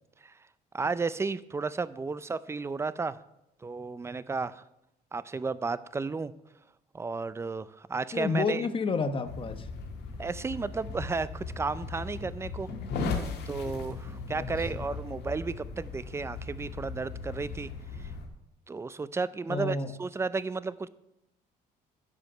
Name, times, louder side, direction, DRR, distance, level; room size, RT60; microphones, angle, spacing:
voice 1, 0.7-3.2 3.6-4.6 5.1-6.3 6.9-8.6 10.2-12.7 13.1-17.7 18.0-18.1 18.7-20.9, right 4 dB, 15° right, 16 dB, 0.4 m, -33 dB
voice 2, 8.1-9.7 14.3-14.5 14.7-15.0 19.5-19.9, left 4 dB, 30° left, 9 dB, 1.0 m, -30 dB
sound 1, 9.2-18.3, left 4 dB, 80° left, 1.9 m, -37 dB
11.5 x 5.0 x 6.7 m, 0.86 s
cardioid pair, 110°, 17 cm